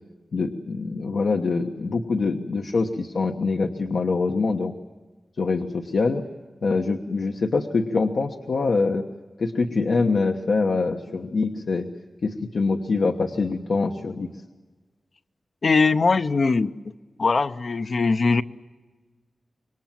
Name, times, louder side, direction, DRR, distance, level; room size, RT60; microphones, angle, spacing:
voice 1, 0.3-4.7 5.4-6.2 6.6-9.0 9.4-11.9 12.2-14.3, left 4 dB, 80° left, 3 dB, 1.2 m, -24 dB
voice 2, 15.6-16.7 17.2-18.4, left 4 dB, 60° left, 10 dB, 0.7 m, -21 dB
26.5 x 23.5 x 7.5 m, 1.3 s
wide cardioid pair, 90°, 0 cm